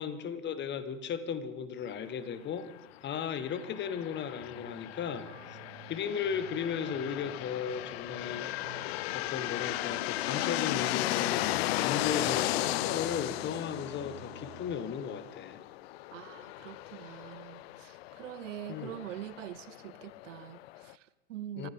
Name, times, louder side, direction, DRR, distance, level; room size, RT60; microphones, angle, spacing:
voice 1, 0.0-2.7 3.0-5.3 5.9-8.5 9.1-11.5 11.8-15.6 18.7-18.9 21.6-21.7, left 7 dB, 25° left, 1.4 m, -35 dB
sound 1, 3.3-20.9, left 17 dB, 45° left, 0.6 m, -36 dB
sound 2, 4.4-14.8, right 16 dB, 40° right, 1.3 m, -54 dB
voice 2, 16.1-21.7, right 12 dB, 60° right, 0.8 m, -44 dB
25.0 x 15.0 x 3.7 m
hypercardioid pair, 105°, 43 cm